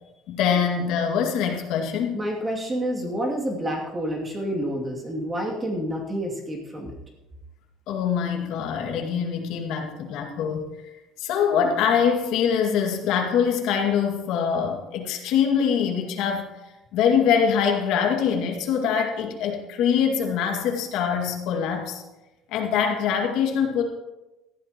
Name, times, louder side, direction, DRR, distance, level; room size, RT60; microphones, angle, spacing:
voice 1, 0.3-2.2 7.9-10.7 11.2-16.5 16.9-22.0 22.5-23.8, left 7 dB, 65° left, 2 dB, 2.1 m, -24 dB
voice 2, 2.1-6.9, equal, 15° right, -1 dB, 2.6 m, -28 dB
18.5 x 14.0 x 3.0 m, 1.0 s
cardioid pair, 160°, 0 cm